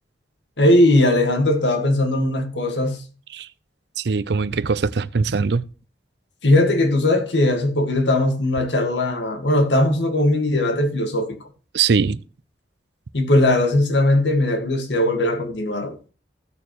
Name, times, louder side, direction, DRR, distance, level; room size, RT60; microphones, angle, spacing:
voice 1, 0.6-3.0 6.4-11.5 13.1-15.9, left 1 dB, 80° left, 1.8 m, -19 dB
voice 2, 4.0-5.6 11.7-12.2, right 5 dB, 65° right, 0.5 m, -21 dB
15.5 x 6.8 x 3.1 m
head